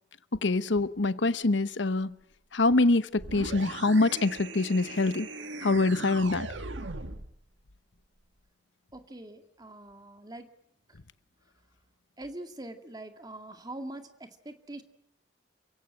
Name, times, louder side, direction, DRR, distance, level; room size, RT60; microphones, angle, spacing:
voice 1, 0.4-2.1 2.5-5.3 5.6-6.5, left 2 dB, 70° left, 1.0 m, -25 dB
sound 1, 3.2-7.3, right 3 dB, 75° right, 1.7 m, -39 dB
voice 2, 8.9-10.5 10.9-11.0 12.2-14.8, right 1 dB, 20° right, 2.1 m, -43 dB
29.5 x 17.0 x 8.9 m
head